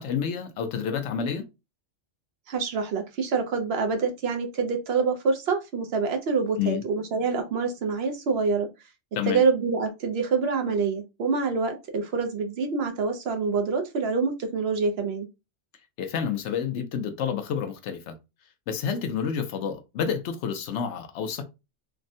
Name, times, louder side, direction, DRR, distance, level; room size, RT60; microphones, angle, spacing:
voice 1, 0.0-1.4 6.6-6.8 9.1-9.4 16.0-18.1 18.7-21.4, left 7 dB, 75° left, 0.9 m, -29 dB
voice 2, 2.5-8.7 9.3-15.3, right 4 dB, 65° right, 0.8 m, -26 dB
3.4 x 2.0 x 2.6 m
omnidirectional pair, 1.2 m